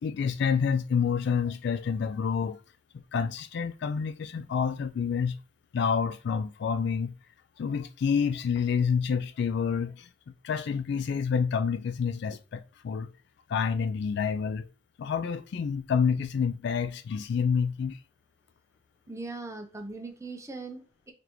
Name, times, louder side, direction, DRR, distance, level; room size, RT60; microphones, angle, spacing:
voice 1, 0.0-2.6 3.1-5.4 5.7-7.1 7.6-10.1 10.4-13.1 13.5-14.7 15.0-18.0, left 6 dB, 60° left, 0.3 m, -28 dB
voice 2, 19.1-21.1, right 3 dB, 15° right, 0.6 m, -40 dB
3.9 x 3.3 x 2.9 m
head